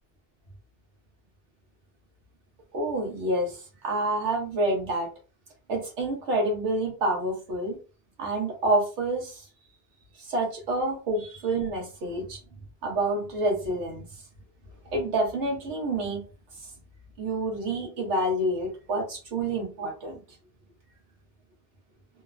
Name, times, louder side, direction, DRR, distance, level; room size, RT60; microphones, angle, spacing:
voice 1, 2.7-5.1 5.7-7.8 8.2-9.5 10.2-12.4 12.8-14.2 14.9-16.2 17.2-20.2, right 2 dB, 90° right, 1 dB, 1.2 m, -28 dB
2.9 x 2.1 x 2.4 m, 0.34 s
omnidirectional pair, 1.1 m